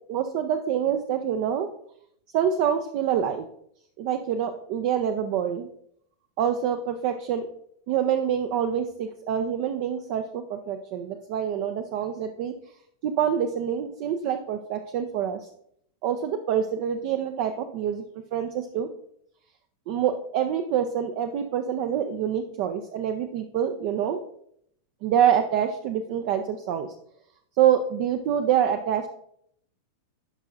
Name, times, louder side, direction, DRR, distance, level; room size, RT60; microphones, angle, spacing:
voice 1, 0.1-1.7 2.3-3.5 4.0-5.7 6.4-7.5 7.9-12.5 13.0-15.5 16.0-18.0 18.3-18.9 19.9-24.2 25.0-26.9 27.6-29.1, right 9 dB, 45° right, 6 dB, 0.5 m, -26 dB
10.5 x 5.5 x 2.6 m, 0.69 s
figure-of-eight pair, 90°, 0 cm